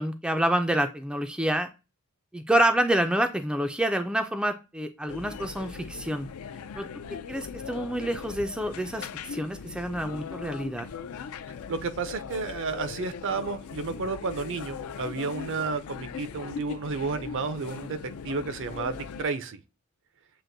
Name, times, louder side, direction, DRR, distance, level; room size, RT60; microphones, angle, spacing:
voice 1, 0.0-1.7 2.3-6.3 6.8-6.9 7.3-10.9, right 1 dB, 5° right, 0.3 m, -27 dB
sound 1, 5.1-19.2, left 6 dB, 70° left, 0.4 m, -39 dB
voice 2, 11.7-18.0 18.2-19.6, right 4 dB, 55° right, 0.5 m, -31 dB
7.5 x 2.5 x 2.6 m
head